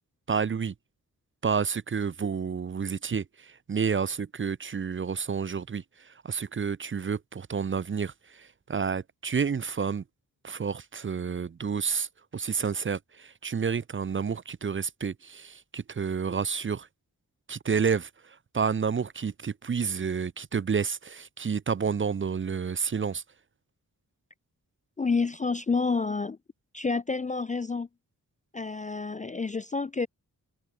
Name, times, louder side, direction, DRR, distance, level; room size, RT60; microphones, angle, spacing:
voice 1, 0.3-0.7 1.4-10.0 10.4-16.9 17.5-23.2, right 6 dB, 35° right, 0.5 m, -30 dB
voice 2, 25.0-26.4 26.7-27.9 28.5-30.1, left 4 dB, 20° left, 0.4 m, -29 dB
cardioid pair, 55°, 36 cm